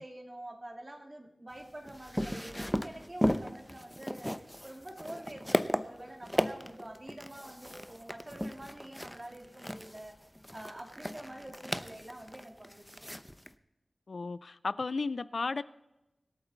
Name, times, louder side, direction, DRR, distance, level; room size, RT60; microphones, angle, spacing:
voice 1, 0.0-4.4 4.6-10.2 10.5-13.1, right 1 dB, 30° right, 3 dB, 2.2 m, -47 dB
sound 1, 1.6-13.5, equal, 5° left, 0.7 m, -36 dB
voice 2, 14.1-15.6, left 3 dB, 75° left, 16 dB, 0.4 m, -34 dB
25.0 x 8.7 x 4.0 m, 0.94 s
wide cardioid pair, 55°, 0 cm